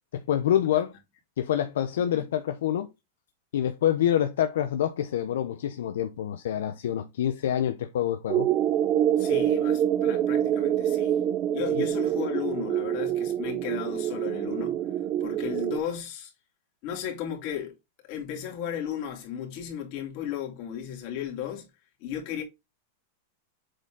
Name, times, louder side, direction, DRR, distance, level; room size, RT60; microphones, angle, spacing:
voice 1, 0.1-0.9 1.4-2.9 3.5-8.5 11.7-11.9, left 10 dB, 80° left, 0.9 m, -26 dB
sound 1, 8.3-15.8, right 11 dB, 35° right, 0.7 m, -26 dB
voice 2, 9.2-11.2 11.5-14.8 15.2-16.3 16.8-17.8 18.0-21.7 22.0-22.4, left 9 dB, 50° left, 3.1 m, -35 dB
7.9 x 4.4 x 3.7 m
supercardioid pair, 135°, 0 cm